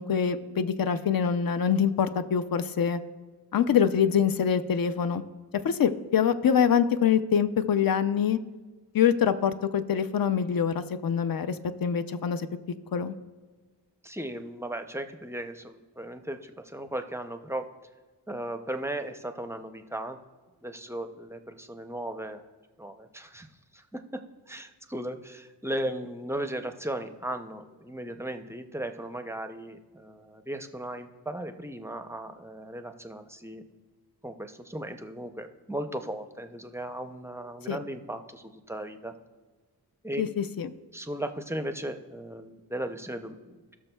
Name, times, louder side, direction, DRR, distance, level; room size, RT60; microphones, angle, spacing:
voice 1, 0.0-3.0 3.5-5.2 5.6-8.4 8.9-12.5 12.9-13.1 37.7-37.8 40.2-40.7, left 8 dB, 55° left, 10 dB, 0.5 m, -25 dB
voice 2, 14.0-17.7 18.3-20.2 20.6-22.4 22.8-23.5 23.7-24.2 24.5-33.6 34.2-39.1 40.0-40.2 40.9-43.8, right 1 dB, 5° right, 7 dB, 0.5 m, -36 dB
17.5 x 6.3 x 2.2 m, 1.4 s
wide cardioid pair, 85°, 41 cm